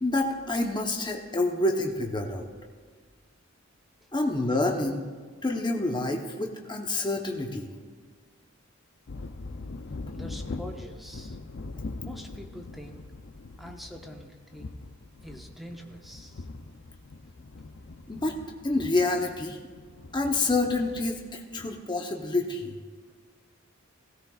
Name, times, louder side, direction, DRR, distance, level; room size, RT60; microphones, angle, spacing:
voice 1, 0.0-2.5 4.1-5.0 5.4-7.7 18.1-18.4 18.6-19.6 20.1-22.7, left 2 dB, 20° left, 2 dB, 0.9 m, -28 dB
sound 1, 9.1-21.8, left 3 dB, 60° left, 0.6 m, -42 dB
voice 2, 10.1-11.4 12.0-13.0 13.6-14.7 15.2-16.5, equal, ahead, 1 dB, 1.1 m, -44 dB
17.0 x 16.5 x 2.4 m, 1.6 s
head